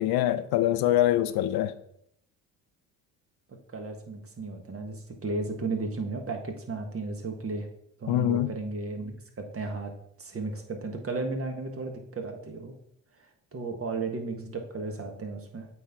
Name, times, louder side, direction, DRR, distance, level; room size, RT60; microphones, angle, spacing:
voice 1, 0.0-1.7 8.1-8.5, left 13 dB, 65° left, 0.6 m, -24 dB
voice 2, 3.7-7.7 8.0-9.9 10.2-12.7 13.2-15.7, right 3 dB, 35° right, 1.5 m, -34 dB
8.0 x 4.5 x 3.7 m
supercardioid pair, 70°, 40 cm